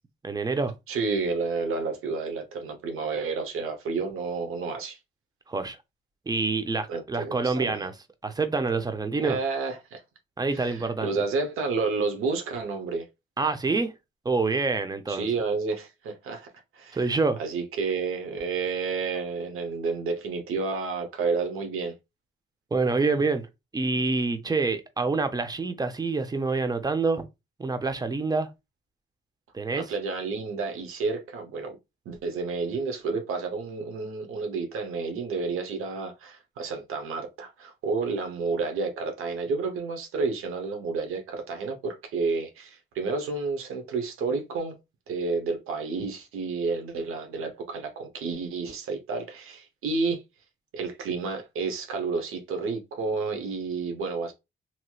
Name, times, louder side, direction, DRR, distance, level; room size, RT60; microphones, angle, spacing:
voice 1, 0.2-0.7 5.5-5.8 6.3-7.9 8.2-9.4 10.4-11.1 13.4-13.9 14.2-15.3 16.9-17.4 22.7-23.5 23.7-27.2 27.6-28.5 29.5-29.8, right 3 dB, 20° right, 0.6 m, -26 dB
voice 2, 0.9-5.0 6.9-7.9 9.2-10.0 10.5-13.1 15.1-16.5 16.7-17.1 17.4-22.0 29.7-31.8 32.1-44.8 45.1-50.2 50.7-54.3, right 4 dB, 85° right, 0.9 m, -30 dB
2.9 x 2.9 x 2.3 m
cardioid pair, 70°, 21 cm